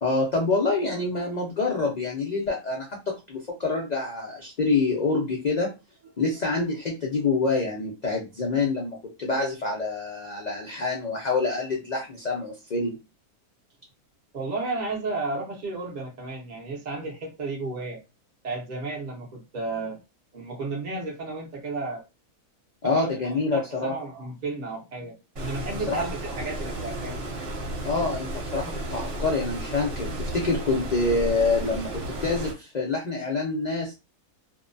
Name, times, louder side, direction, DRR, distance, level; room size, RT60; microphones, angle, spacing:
voice 1, 0.0-5.7 6.2-13.0 22.8-23.9 25.9-26.0 27.8-33.9, left 3 dB, 85° left, -2 dB, 0.3 m, -26 dB
voice 2, 14.3-18.0 18.4-20.0 20.3-22.0 22.8-27.3, right 3 dB, 40° right, -2 dB, 0.7 m, -33 dB
Stream, 25.4-32.5, right 1 dB, 55° right, 1.1 m, -33 dB
2.7 x 2.2 x 2.5 m, 0.26 s
omnidirectional pair, 1.6 m